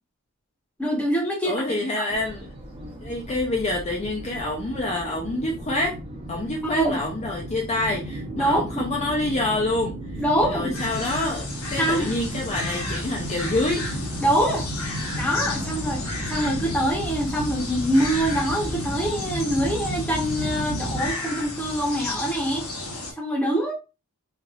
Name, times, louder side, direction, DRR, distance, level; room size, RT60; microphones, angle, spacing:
voice 1, 0.8-1.5 2.0-2.1 6.6-7.0 8.4-8.8 10.2-10.7 11.8-12.1 14.2-14.8 15.1-16.0 16.3-22.7 23.2-23.7, equal, 5° left, 0.8 m, -24 dB
voice 2, 1.4-2.5 3.0-6.0 6.3-10.2 10.5-13.9, left 2 dB, 30° left, 0.5 m, -27 dB
sound 1, 2.1-21.1, equal, 25° right, 0.7 m, -34 dB
sound 2, 10.7-23.1, left 2 dB, 70° left, 0.9 m, -33 dB
3.3 x 2.5 x 2.3 m
head